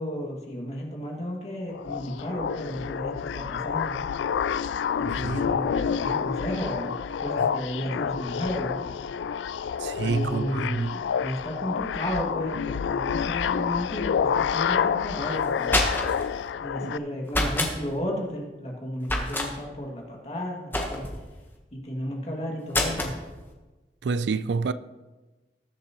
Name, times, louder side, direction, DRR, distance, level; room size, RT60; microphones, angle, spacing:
voice 1, 0.0-4.0 5.0-8.7 10.0-15.7 16.6-21.0 21.8-23.1, equal, 35° left, 2.2 m, -33 dB
sound 1, 1.7-17.0, left 7 dB, 90° left, 0.3 m, -28 dB
voice 2, 5.1-5.6 7.4-7.5 9.8-11.0 16.8-16.9 24.0-24.7, right 4 dB, 75° right, 0.4 m, -28 dB
sound 2, 15.4-16.3 17.3-17.7 19.0-19.5 20.7-21.2 22.7-23.2, left 1 dB, 10° left, 1.2 m, -26 dB
19.5 x 7.4 x 3.0 m
head